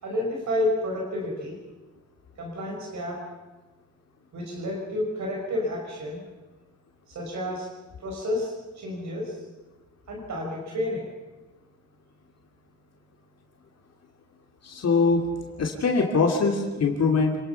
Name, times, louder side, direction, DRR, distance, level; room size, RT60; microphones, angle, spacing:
voice 1, 0.0-1.6 2.4-3.2 4.3-6.2 7.1-7.7 8.0-9.4 10.1-11.0, left 1 dB, 70° right, -1 dB, 5.8 m, -30 dB
voice 2, 14.6-15.3 15.6-17.4, left 4 dB, 60° left, 1 dB, 2.8 m, -22 dB
27.5 x 20.0 x 5.8 m, 1.2 s
cardioid pair, 110°, 29 cm